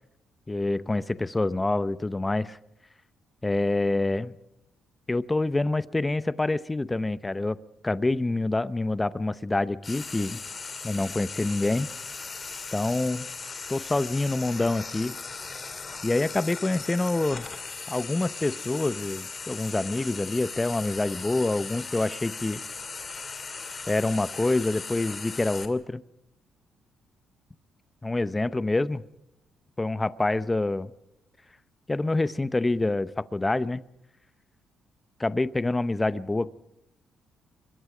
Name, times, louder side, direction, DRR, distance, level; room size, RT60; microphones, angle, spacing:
voice 1, 0.5-2.6 3.4-4.3 5.1-7.6 7.8-10.4 10.8-11.9 12.7-13.3 13.7-15.2 16.0-17.5 17.9-22.6 23.9-26.0 28.0-29.0 29.8-30.9 31.9-33.8 35.2-36.5, left 2 dB, 15° left, 15 dB, 0.7 m, -26 dB
Frying (food), 9.8-25.7, left 4 dB, 35° left, 2.4 m, -38 dB
25.0 x 21.5 x 5.0 m, 0.84 s
cardioid pair, 90°, 0 cm